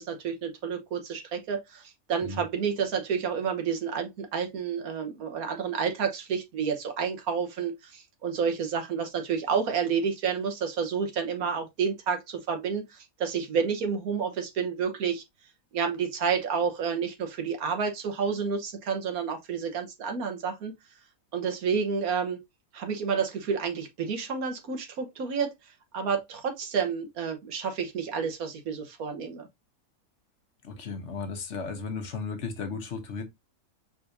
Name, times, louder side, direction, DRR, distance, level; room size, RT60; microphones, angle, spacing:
voice 1, 0.0-15.2 15.7-20.7 21.3-22.4 22.7-25.5 25.9-29.5, right 6 dB, 80° right, 1.5 m, -30 dB
voice 2, 30.6-33.2, left 4 dB, 55° left, 1.1 m, -35 dB
4.8 x 3.8 x 2.6 m
omnidirectional pair, 1.5 m